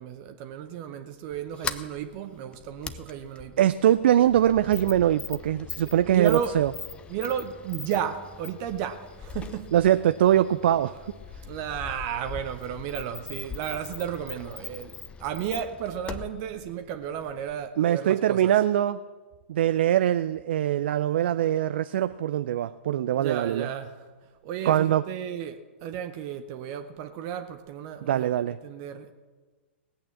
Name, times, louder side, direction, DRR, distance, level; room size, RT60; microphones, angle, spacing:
voice 1, 0.0-3.7 5.8-6.6 7.1-9.7 11.5-18.5 23.1-24.0 24.4-28.3 28.6-29.1, right 9 dB, 40° right, 0.9 m, -33 dB
Sliding door, 1.3-17.7, left 6 dB, 15° left, 0.7 m, -41 dB
voice 2, 3.6-6.7 9.7-11.0 17.8-19.0 19.5-23.7 24.6-25.0 28.1-28.6, right 11 dB, 55° right, 0.4 m, -22 dB
18.5 x 8.7 x 7.3 m
figure-of-eight pair, 110°, 7 cm